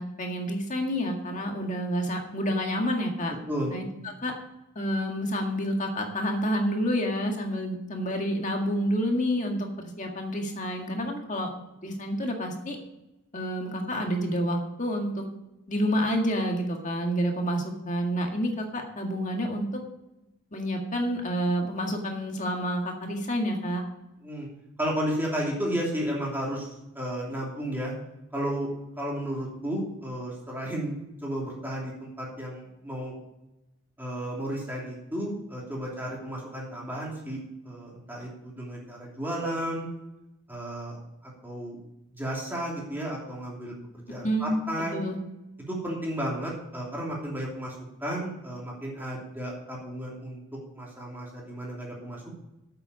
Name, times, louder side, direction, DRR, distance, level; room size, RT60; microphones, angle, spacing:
voice 1, 0.0-3.4 3.7-3.8 4.2-4.3 4.8-11.5 11.8-12.8 13.3-15.2 15.7-19.8 20.5-23.8 44.2-44.5 44.9-45.2, equal, 35° left, 2 dB, 1.9 m, -29 dB
voice 2, 24.8-27.9 28.3-28.7 29.0-31.0 31.2-33.1 34.0-39.9 40.5-41.0 41.4-41.8 42.1-43.7 44.1-45.1 45.7-47.7 48.0-50.4 50.7-52.3, right 1 dB, 10° right, -4 dB, 2.9 m, -33 dB
8.8 x 7.8 x 8.4 m, 0.94 s
head